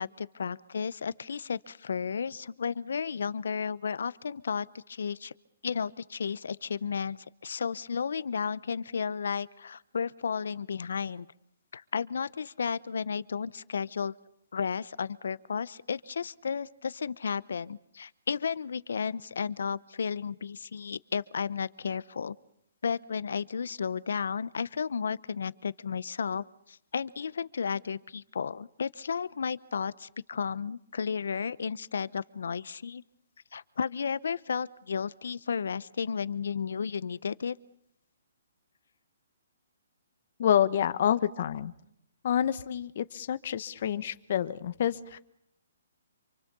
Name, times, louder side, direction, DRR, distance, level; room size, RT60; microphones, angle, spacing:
voice 1, 0.0-5.3 5.6-7.2 7.4-11.3 11.7-14.1 14.5-22.4 22.8-33.0 33.5-37.6, left 6 dB, 75° left, 19 dB, 0.9 m, -33 dB
voice 2, 40.4-41.7 42.2-45.2, left 9 dB, 50° left, 13 dB, 1.3 m, -28 dB
27.0 x 24.5 x 7.0 m, 0.74 s
hypercardioid pair, 150°, 0 cm